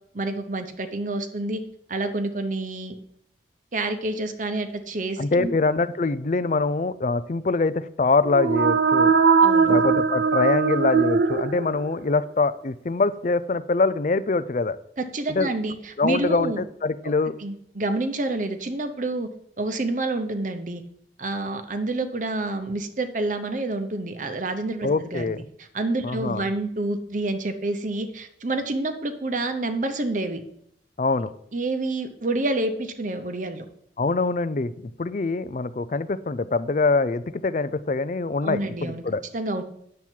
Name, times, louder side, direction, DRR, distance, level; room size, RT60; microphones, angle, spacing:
voice 1, 0.1-1.6 1.9-3.0 3.7-5.5 9.4-9.8 15.0-16.6 17.0-17.1 17.4-19.3 19.6-20.8 21.2-25.3 25.7-30.4 31.5-33.6 38.4-39.0 39.3-39.6, right 2 dB, 45° right, 7 dB, 0.8 m, -28 dB
voice 2, 5.2-9.1 9.7-14.8 15.3-15.5 16.0-17.3 24.8-25.4 26.0-26.5 31.0-31.3 34.0-34.7 35.0-39.2, left 3 dB, 40° left, 15 dB, 0.4 m, -24 dB
sound 1, 8.2-12.1, right 5 dB, 60° right, 0.5 m, -20 dB
9.7 x 7.3 x 4.5 m, 0.71 s
head